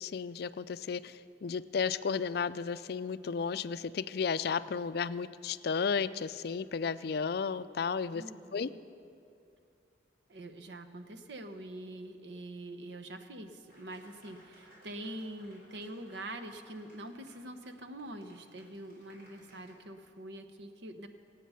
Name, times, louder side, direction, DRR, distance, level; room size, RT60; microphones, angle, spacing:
voice 1, 0.0-8.2 8.5-8.7, left 6 dB, 55° left, 15 dB, 0.4 m, -33 dB
voice 2, 8.1-8.8 10.3-21.1, right 1 dB, 65° right, 8 dB, 0.9 m, -45 dB
Applause, 13.7-19.7, equal, 50° right, 4.0 m, -61 dB
24.5 x 8.4 x 5.6 m, 2.5 s
head